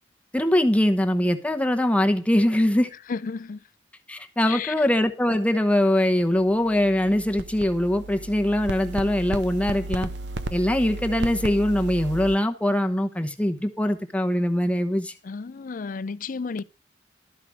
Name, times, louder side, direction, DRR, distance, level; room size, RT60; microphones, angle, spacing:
voice 1, 0.3-2.9 4.1-10.1 10.5-15.1, left 1 dB, 10° left, 0.9 m, -22 dB
voice 2, 3.1-3.6 4.5-4.9 15.2-16.6, left 5 dB, 50° left, 0.4 m, -32 dB
Phone Circuitry Hum, 6.4-12.4, right 2 dB, 75° right, 0.8 m, -34 dB
12.5 x 4.9 x 6.1 m
head